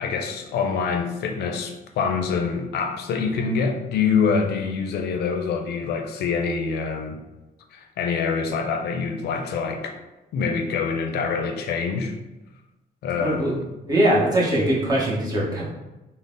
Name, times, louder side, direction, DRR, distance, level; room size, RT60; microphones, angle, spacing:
voice 1, 0.0-7.2 7.7-9.9 10.3-12.1 13.0-13.7, left 5 dB, 80° left, 5 dB, 0.5 m, -25 dB
voice 2, 13.2-13.5 13.9-15.6, right 1 dB, 25° right, -5 dB, 0.9 m, -21 dB
3.9 x 2.0 x 3.7 m, 1.0 s
cardioid pair, 155°, 17 cm